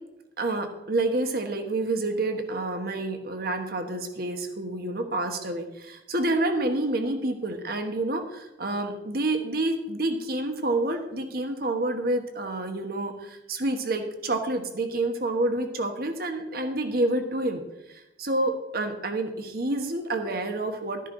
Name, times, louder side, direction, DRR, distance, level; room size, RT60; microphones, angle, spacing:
voice 1, 0.4-17.6 17.9-21.0, right 2 dB, 60° right, 5 dB, 1.3 m, -28 dB
13.0 x 9.9 x 3.9 m, 0.91 s
head